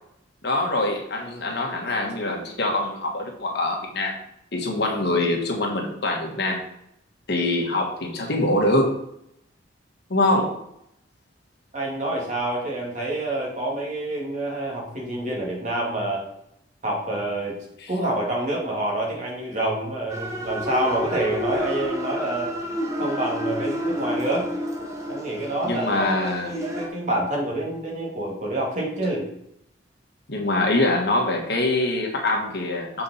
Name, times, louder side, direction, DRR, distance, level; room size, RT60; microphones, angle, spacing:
voice 1, 0.4-4.1 4.5-6.6 7.3-9.0 10.1-10.5 17.8-17.9 25.6-26.5 30.3-33.0, left 2 dB, 65° left, 1 dB, 1.5 m, -24 dB
voice 2, 11.7-16.3 16.8-17.6 17.9-22.5 23.0-24.5 25.1-29.3, right 1 dB, 45° right, -2 dB, 2.2 m, -27 dB
sound 1, 20.1-26.9, equal, 15° right, 1.1 m, -30 dB
7.2 x 4.6 x 4.2 m, 0.76 s
head